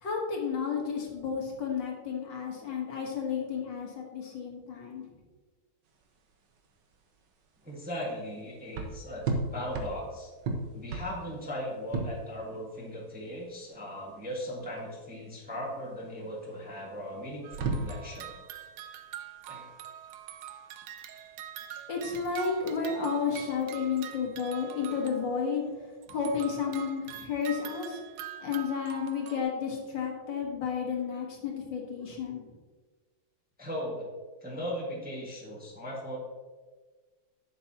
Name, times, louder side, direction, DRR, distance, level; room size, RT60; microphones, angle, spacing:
voice 1, 0.0-5.0 21.9-25.7 26.1-28.0 28.4-32.4, left 6 dB, 60° left, 0 dB, 1.9 m, -32 dB
sound 1, 5.9-24.1, right 3 dB, 65° right, 1.4 m, -38 dB
voice 2, 7.6-10.3 10.7-18.3 19.5-19.7 33.6-34.1 34.4-36.2, equal, 5° right, -4 dB, 1.3 m, -38 dB
sound 2, 17.4-25.6 26.0-29.4, right 10 dB, 85° right, 1.5 m, -44 dB
11.0 x 6.9 x 2.9 m, 1.4 s
omnidirectional pair, 2.4 m